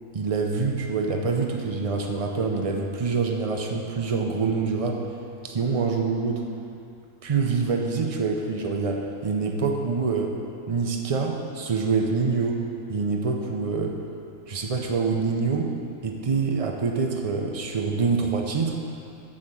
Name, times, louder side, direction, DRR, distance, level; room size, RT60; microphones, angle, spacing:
voice 1, 0.1-5.0 5.4-6.4 7.2-10.3 10.7-12.6 12.9-14.0 14.5-15.7 16.0-18.8, right 4 dB, 65° right, 2 dB, 0.3 m, -25 dB
7.9 x 5.1 x 7.5 m, 2.6 s
omnidirectional pair, 1.5 m